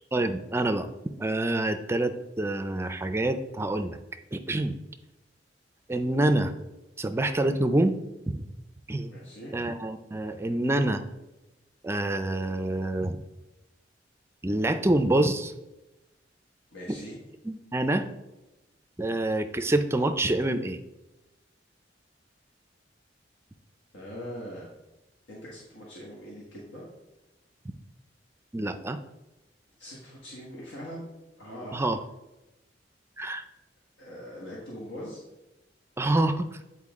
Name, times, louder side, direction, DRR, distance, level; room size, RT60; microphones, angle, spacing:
voice 1, 0.1-0.9 1.2-4.0 4.3-4.7 5.9-6.5 7.0-8.0 8.3-8.4 8.9-9.1 9.5-11.0 11.8-13.2 14.4-15.5 17.4-18.1 19.0-20.8 28.5-29.0 31.7-32.0 33.2-33.5 36.0-36.5, right 1 dB, 15° right, 9 dB, 0.4 m, -26 dB
voice 2, 9.1-9.5 16.7-17.2 23.9-24.8 25.3-26.8 29.8-31.0 31.4-31.8 34.0-35.2, equal, 85° left, -4 dB, 1.5 m, -41 dB
8.5 x 4.4 x 3.6 m, 0.97 s
head